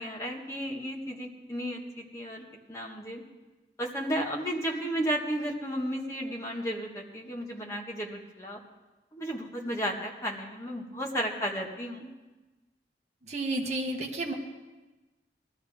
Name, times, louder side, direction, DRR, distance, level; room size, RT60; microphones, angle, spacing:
voice 1, 0.0-3.2 3.8-8.6 9.1-12.2, equal, 15° left, -2 dB, 1.7 m, -33 dB
voice 2, 13.3-14.3, right 2 dB, 40° right, -1 dB, 1.2 m, -31 dB
19.5 x 13.0 x 3.6 m, 1.2 s
head